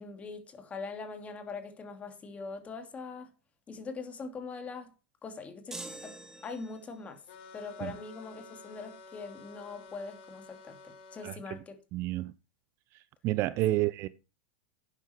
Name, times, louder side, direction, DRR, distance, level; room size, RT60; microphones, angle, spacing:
voice 1, 0.0-3.3 3.7-4.9 5.2-6.2 6.4-7.2 7.5-11.8 13.7-13.8, left 4 dB, 20° left, 2.8 m, -42 dB
sound 1, 5.7-7.0, right 2 dB, 5° right, 2.7 m, -44 dB
sound 2, 7.3-11.4, left 4 dB, 65° left, 3.8 m, -51 dB
voice 2, 11.9-12.3 13.2-14.1, right 16 dB, 45° right, 0.7 m, -29 dB
11.5 x 9.3 x 4.6 m
hypercardioid pair, 125°, 6 cm